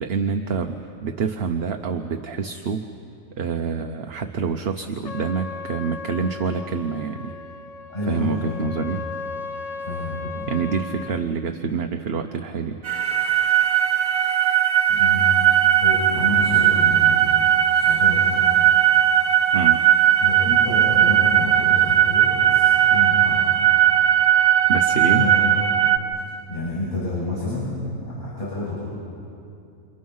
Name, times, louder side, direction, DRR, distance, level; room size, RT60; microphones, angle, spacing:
voice 1, 0.0-2.8 3.4-7.4 8.1-9.0 10.5-12.8 19.5-19.8 24.7-25.3, right 5 dB, 50° right, 6 dB, 1.0 m, -26 dB
Trumpet, 5.0-11.3, left 4 dB, 65° left, 1.1 m, -36 dB
voice 2, 7.9-8.7 9.9-10.5 14.9-15.3 15.8-17.3 17.7-18.9 20.2-23.5 24.9-25.4 26.5-28.8, left 2 dB, 35° left, -9 dB, 7.6 m, -29 dB
sound 1, 12.8-26.0, right 11 dB, 70° right, 1.6 m, -18 dB
29.0 x 27.5 x 5.6 m, 2.6 s
omnidirectional pair, 1.5 m